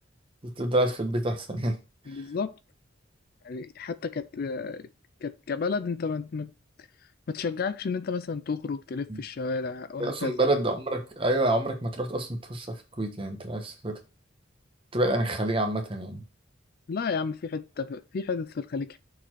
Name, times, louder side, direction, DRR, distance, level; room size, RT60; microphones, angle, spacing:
voice 1, 0.4-1.8 2.1-2.2 9.1-9.2 10.0-14.0 14.9-16.2, right 1 dB, 25° right, 1.2 m, -28 dB
voice 2, 2.1-2.6 3.4-4.9 5.2-6.5 7.3-10.4 16.9-19.0, left 4 dB, 50° left, 0.4 m, -32 dB
6.7 x 4.2 x 4.5 m
head